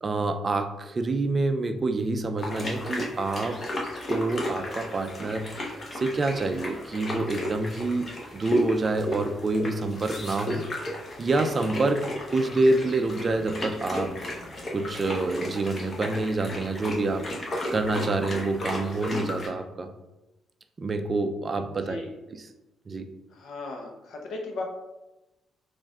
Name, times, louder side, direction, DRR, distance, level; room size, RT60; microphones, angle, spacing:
voice 1, 0.0-3.6 4.1-5.5 5.9-10.7 11.2-14.1 14.7-17.3 17.7-19.9 20.8-22.0 22.3-22.5 22.9-23.1, right 2 dB, 35° right, 8 dB, 0.4 m, -27 dB
sound 1, 2.4-19.5, left 1 dB, 40° left, 0.9 m, -34 dB
voice 2, 23.3-24.6, left 2 dB, 70° left, 1 dB, 0.8 m, -36 dB
4.0 x 2.5 x 3.6 m, 1.0 s
cardioid pair, 90°, 0 cm